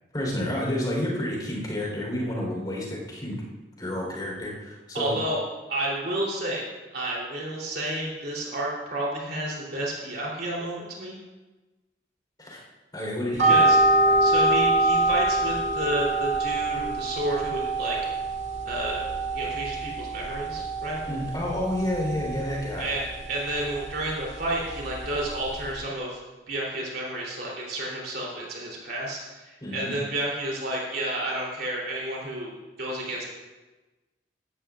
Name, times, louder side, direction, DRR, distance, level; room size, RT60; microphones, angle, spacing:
voice 1, 0.1-3.4 3.8-5.2 12.4-12.6 12.9-13.6 14.0-14.3 21.1-22.8 29.6-29.9, left 1 dB, 20° left, -2 dB, 3.9 m, -30 dB
voice 2, 4.9-5.4 5.7-11.2 13.4-13.8 14.2-18.0 18.6-19.0 19.3-21.0 22.7-23.0 23.3-26.2 26.5-32.5 32.8-33.2, right 1 dB, 55° right, -3 dB, 3.3 m, -31 dB
sound 1, 13.4-25.7, right 2 dB, 80° right, 2.2 m, -26 dB
16.5 x 12.5 x 2.5 m, 1.1 s
head